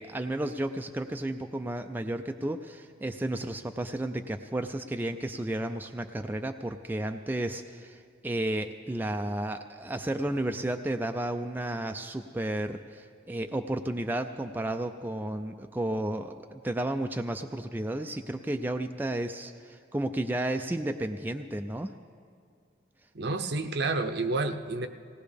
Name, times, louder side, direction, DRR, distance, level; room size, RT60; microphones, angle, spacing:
voice 1, 0.0-21.9, right 1 dB, 10° right, 5 dB, 0.3 m, -32 dB
voice 2, 23.1-24.9, right 3 dB, 60° right, 8 dB, 0.7 m, -29 dB
19.0 x 17.5 x 3.4 m, 2.3 s
head